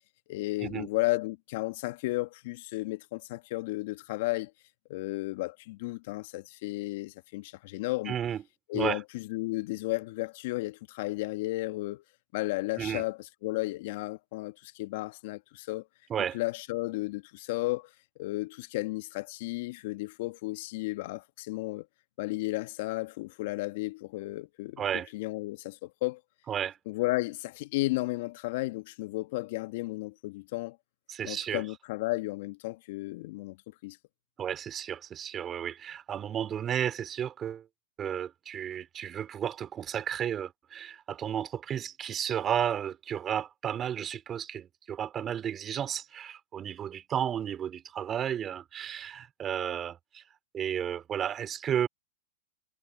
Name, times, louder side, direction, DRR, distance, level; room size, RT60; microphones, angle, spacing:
voice 1, 0.3-4.5 4.9-8.2 8.7-12.0 12.3-15.9 16.3-17.9 18.2-21.9 22.2-24.8 25.1-26.2 26.9-30.8 31.2-34.0, left 20 dB, 60° left, 1.3 m, -33 dB
voice 2, 8.1-8.4 8.7-9.0 12.8-13.0 16.1-16.4 24.8-25.1 26.5-26.8 31.1-31.6 34.4-37.6 38.0-50.2 50.5-51.9, right 9 dB, 30° right, 3.9 m, -33 dB
hypercardioid pair, 110°, 0 cm